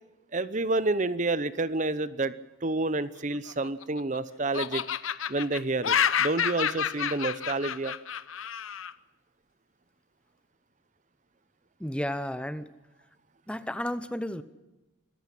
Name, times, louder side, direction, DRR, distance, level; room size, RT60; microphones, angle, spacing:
voice 1, 0.3-2.3 2.6-4.8 5.3-7.9, right 2 dB, 35° right, 15 dB, 0.8 m, -29 dB
Laughter, 3.3-4.2 4.5-8.9, left 8 dB, 80° left, 0.9 m, -29 dB
voice 2, 11.8-12.7 13.5-14.4, left 1 dB, 5° left, 13 dB, 0.8 m, -32 dB
25.5 x 14.5 x 8.5 m, 1.1 s
head